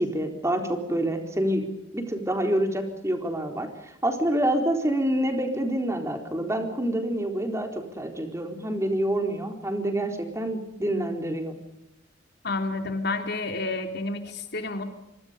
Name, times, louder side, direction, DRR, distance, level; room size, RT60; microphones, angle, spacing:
voice 1, 0.0-1.7 1.9-11.5, right 1 dB, 15° right, 4 dB, 4.2 m, -27 dB
voice 2, 12.4-14.8, left 3 dB, 60° left, 5 dB, 3.6 m, -30 dB
26.0 x 26.0 x 5.3 m, 0.90 s
head